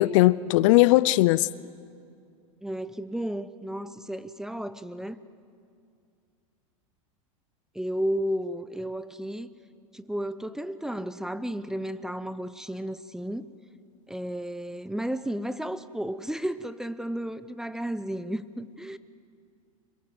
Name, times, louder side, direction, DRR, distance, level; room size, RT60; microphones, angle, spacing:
voice 1, 0.0-1.5, left 18 dB, 60° left, 0.6 m, -19 dB
voice 2, 2.6-5.2 7.7-9.5 9.9-13.5 14.1-19.0, equal, 5° right, 0.8 m, -33 dB
26.0 x 22.0 x 7.8 m
hypercardioid pair, 115°, 18 cm